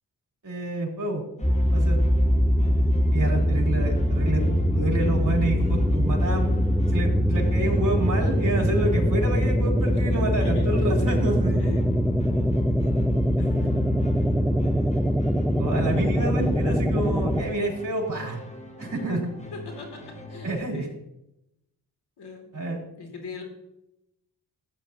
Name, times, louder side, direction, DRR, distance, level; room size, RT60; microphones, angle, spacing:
voice 1, 0.4-1.2 1.7-2.0 3.1-4.4 4.7-6.6 6.9-11.6 13.4-13.5 15.6-18.4 18.8-19.2 20.4-20.9 22.5-22.8, right 2 dB, 50° right, -1 dB, 4.0 m, -28 dB
sound 1, 1.4-20.6, left 1 dB, 15° left, 1.9 m, -42 dB
sound 2, 1.4-17.4, equal, ahead, 0.8 m, -22 dB
voice 2, 10.4-10.9 11.4-11.9 19.5-20.9 22.2-22.5 23.0-23.4, left 3 dB, 75° left, 1 dB, 3.2 m, -40 dB
14.5 x 9.5 x 3.0 m, 0.87 s
cardioid pair, 60°, 40 cm